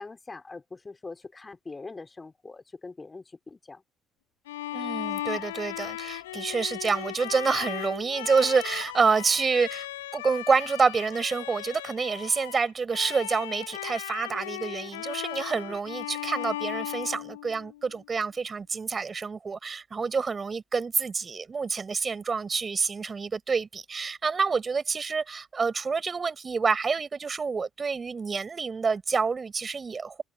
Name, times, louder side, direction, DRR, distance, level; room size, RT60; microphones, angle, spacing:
voice 1, 0.0-3.8 15.5-15.8, left 3 dB, 25° left, 4.4 m, -43 dB
Bowed string instrument, 4.5-17.9, left 15 dB, 90° left, 4.9 m, -37 dB
voice 2, 4.7-9.9 10.1-30.2, right 5 dB, 35° right, 5.3 m, -28 dB
hypercardioid pair, 55°, 0 cm